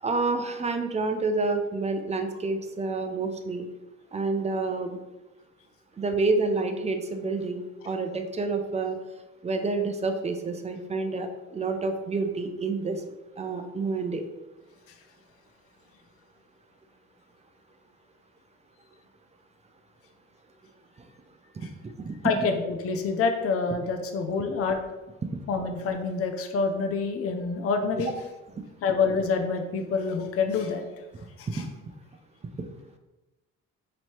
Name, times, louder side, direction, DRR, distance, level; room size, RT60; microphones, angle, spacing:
voice 1, 0.0-3.6 4.1-5.0 6.0-7.6 7.8-9.0 9.4-13.0 13.4-14.2 21.0-21.1 21.6-22.1 25.2-25.3 31.5-31.7, right 3 dB, 25° right, 6 dB, 0.4 m, -28 dB
voice 2, 22.2-24.8 25.5-28.1 28.8-30.8 31.4-31.6, left 4 dB, 50° left, 5 dB, 0.5 m, -27 dB
3.0 x 2.8 x 4.4 m, 1.1 s
cardioid pair, 90°, 30 cm